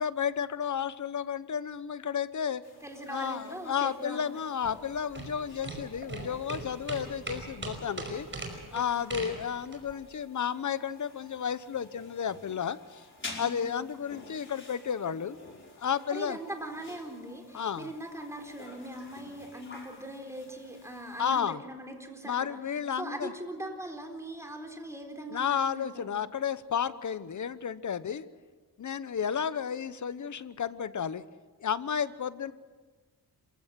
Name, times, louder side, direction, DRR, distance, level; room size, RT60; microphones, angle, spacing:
voice 1, 0.0-2.6 3.1-8.3 8.7-13.0 13.4-15.4 15.8-16.4 17.5-17.9 21.2-21.6 22.2-23.3 25.3-28.2 28.8-31.2 31.6-32.5, left 7 dB, 50° left, 15 dB, 1.1 m, -32 dB
sound 1, 2.6-21.4, left 2 dB, 30° left, 5.2 m, -51 dB
voice 2, 2.8-4.2 8.7-9.1 13.4-13.7 16.1-26.2, right 1 dB, 5° right, 3 dB, 3.9 m, -41 dB
sound 2, 4.6-10.0, right 2 dB, 30° right, 5.4 m, -40 dB
27.0 x 16.0 x 7.6 m, 1.4 s
cardioid pair, 95°, 39 cm